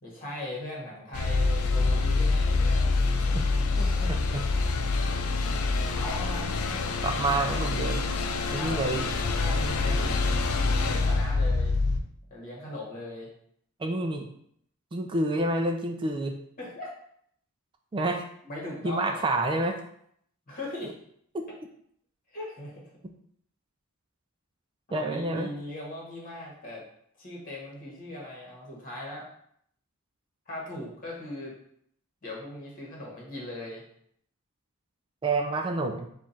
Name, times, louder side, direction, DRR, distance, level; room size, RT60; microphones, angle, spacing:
voice 1, 0.0-3.4 3.8-4.1 5.9-6.8 8.6-10.3 10.8-11.8 12.3-13.3 16.6-16.9 18.4-19.2 20.5-20.9 22.3-22.8 24.9-26.8 27.2-29.3 30.5-31.6 32.2-33.8, left 1 dB, 40° left, -3 dB, 1.4 m, -39 dB
sound 1, 1.1-12.0, left 3 dB, 65° left, 0.4 m, -26 dB
voice 2, 4.1-4.4 7.0-8.1 8.5-9.0 13.8-14.3 14.9-16.4 17.9-18.2 18.8-19.8 21.3-21.4 24.9-25.5 35.2-36.1, right 2 dB, 20° right, 4 dB, 0.3 m, -28 dB
4.6 x 2.4 x 4.1 m, 0.68 s
head